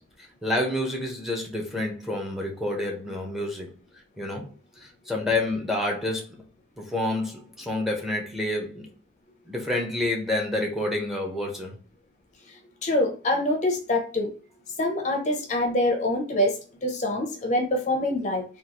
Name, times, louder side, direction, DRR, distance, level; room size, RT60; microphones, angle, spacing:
voice 1, 0.4-3.7 4.2-4.5 4.8-6.3 6.8-8.9 9.5-11.7, left 1 dB, ahead, 0.7 m, -28 dB
voice 2, 12.8-14.3 14.8-18.4, left 1 dB, 40° left, 0.5 m, -25 dB
3.7 x 2.3 x 2.8 m
head